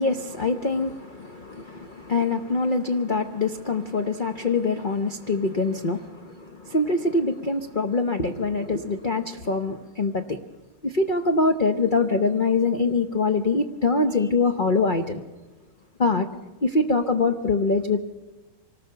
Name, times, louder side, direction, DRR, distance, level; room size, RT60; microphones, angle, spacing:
voice 1, 0.0-10.4 10.8-15.2 16.0-16.3 16.6-18.0, left 3 dB, 40° left, 5 dB, 0.7 m, -24 dB
25.0 x 19.0 x 6.9 m, 1.2 s
omnidirectional pair, 2.2 m